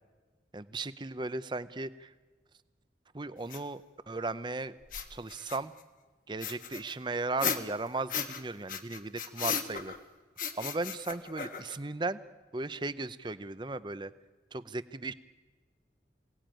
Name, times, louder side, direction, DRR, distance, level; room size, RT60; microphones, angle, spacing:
voice 1, 0.5-2.1 3.1-4.7 5.1-5.7 6.3-9.9 10.6-12.2 12.5-14.1 14.5-15.1, right 3 dB, 25° right, 14 dB, 0.7 m, -36 dB
sound 1, 3.5-3.6 4.8-5.8 6.4-8.4 8.7-10.0 10.4-11.9, left 7 dB, 50° left, 1.5 m, -36 dB
27.0 x 18.5 x 9.1 m, 1.4 s
head